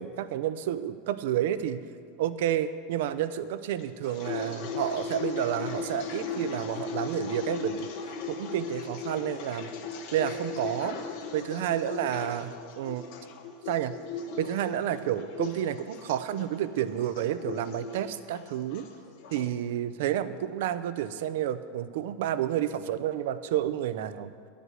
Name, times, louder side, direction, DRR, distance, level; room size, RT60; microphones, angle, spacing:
voice 1, 0.0-1.8 2.2-7.9 8.3-9.7 10.1-11.0 11.3-13.1 13.7-14.0 14.4-18.8 19.3-24.3, right 11 dB, 70° right, 13 dB, 0.5 m, -30 dB
sound 1, 3.8-19.5, left 5 dB, 65° left, 0.9 m, -37 dB
9.7 x 5.1 x 7.9 m, 2.2 s
hypercardioid pair, 100°, 0 cm